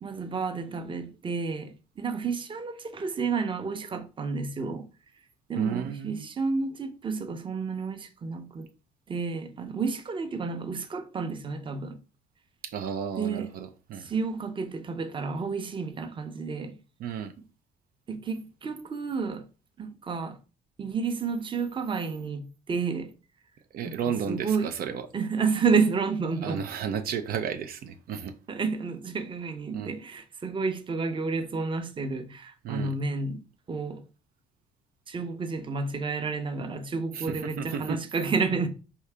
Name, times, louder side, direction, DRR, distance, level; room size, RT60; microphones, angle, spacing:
voice 1, 0.0-4.9 5.5-8.7 9.1-12.0 13.2-13.5 14.0-16.8 18.1-19.5 19.8-20.4 20.8-23.1 23.8-24.0 24.3-24.7 25.1-26.6 28.5-33.4 33.7-34.0 35.1-38.7, right 4 dB, 30° right, 0.7 m, -30 dB
voice 2, 5.6-6.3 12.6-14.1 17.0-17.3 23.7-25.1 26.4-28.4 29.7-29.9 32.6-33.0 37.1-38.0, right 7 dB, 70° right, 0.5 m, -33 dB
4.6 x 2.8 x 3.3 m
cardioid pair, 95°, 16 cm